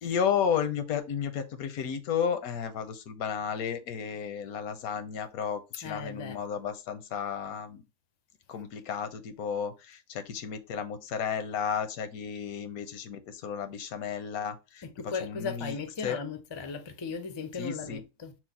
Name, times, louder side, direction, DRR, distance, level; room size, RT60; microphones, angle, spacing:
voice 1, 0.0-7.8 8.5-15.8 16.0-16.2 17.6-18.0, left 7 dB, 80° left, 1.2 m, -33 dB
voice 2, 5.8-6.4 14.8-18.4, left 5 dB, 45° left, 0.3 m, -37 dB
6.2 x 2.1 x 4.0 m
omnidirectional pair, 1.5 m